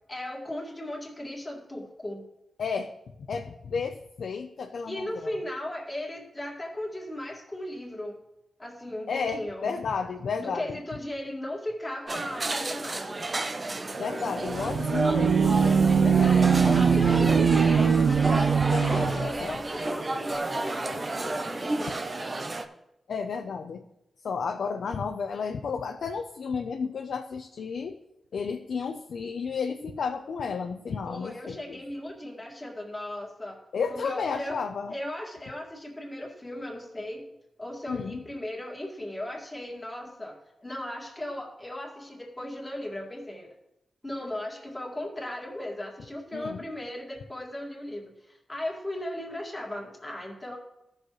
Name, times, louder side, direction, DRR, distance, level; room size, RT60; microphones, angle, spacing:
voice 1, 0.1-2.3 4.8-8.2 8.6-9.7 10.4-13.2 16.2-22.0 31.1-33.6 33.9-34.6 34.9-37.3 37.6-43.5 44.0-50.6, left 1 dB, 15° left, -1 dB, 2.1 m, -37 dB
voice 2, 2.6-2.9 3.3-5.4 9.1-10.8 14.0-17.3 18.7-19.6 23.1-23.8 24.2-28.0 28.3-31.8 33.7-34.9 37.9-38.2 46.3-46.6, left 5 dB, 80° left, 4 dB, 0.6 m, -32 dB
sound 1, 12.1-22.6, right 2 dB, 30° right, 0.7 m, -31 dB
sound 2, 14.5-19.3, right 6 dB, 70° right, 0.4 m, -22 dB
17.0 x 6.5 x 3.2 m, 0.86 s
wide cardioid pair, 150°, 0 cm